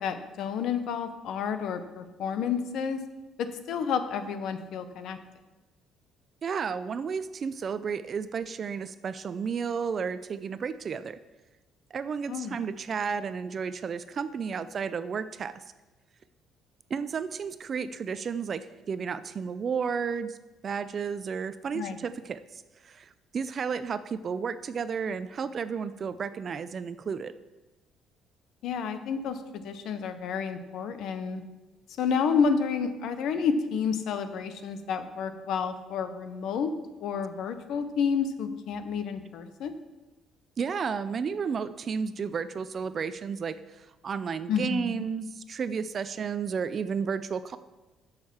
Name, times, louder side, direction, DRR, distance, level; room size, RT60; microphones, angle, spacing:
voice 1, 0.0-3.1 3.4-5.2 12.3-12.6 21.7-22.0 28.6-31.4 32.0-36.7 37.0-39.8 44.5-45.1, left 6 dB, 65° left, 10 dB, 0.8 m, -30 dB
voice 2, 6.4-11.2 11.9-15.6 16.9-20.4 20.6-27.3 40.6-47.6, right 6 dB, 35° right, 13 dB, 0.3 m, -32 dB
7.3 x 6.5 x 7.3 m, 1.1 s
cardioid pair, 155°, 0 cm